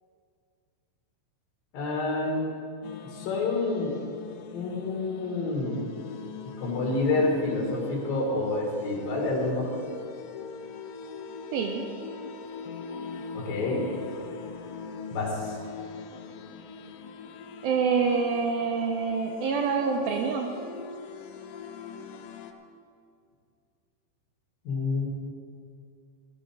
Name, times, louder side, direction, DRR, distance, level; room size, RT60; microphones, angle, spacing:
voice 1, 1.7-2.5 3.1-3.9 4.5-5.8 6.6-9.7 13.5-13.8 15.1-15.6 24.7-25.1, left 3 dB, 60° left, -3 dB, 3.6 m, -28 dB
sound 1, 2.8-22.5, left 5 dB, 90° left, 2.9 m, -42 dB
voice 2, 11.5-11.9 17.6-20.5, right 5 dB, 80° right, 2 dB, 2.2 m, -26 dB
16.5 x 13.5 x 3.7 m, 2.3 s
omnidirectional pair, 5.0 m